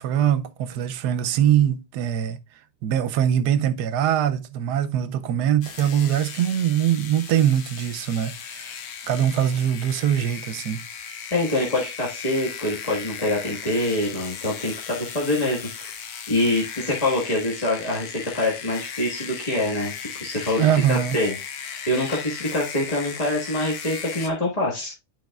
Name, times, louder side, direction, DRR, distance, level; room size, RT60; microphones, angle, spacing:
voice 1, 0.0-2.4 2.8-8.8 9.1-10.8 20.6-21.2, right 10 dB, 80° right, 1.2 m, -22 dB
sound 1, 5.6-24.3, left 7 dB, 70° left, 1.4 m, -37 dB
voice 2, 11.3-16.0 16.3-21.3 21.9-24.9, left 1 dB, 25° left, 1.6 m, -25 dB
11.5 x 4.5 x 2.3 m
omnidirectional pair, 1.8 m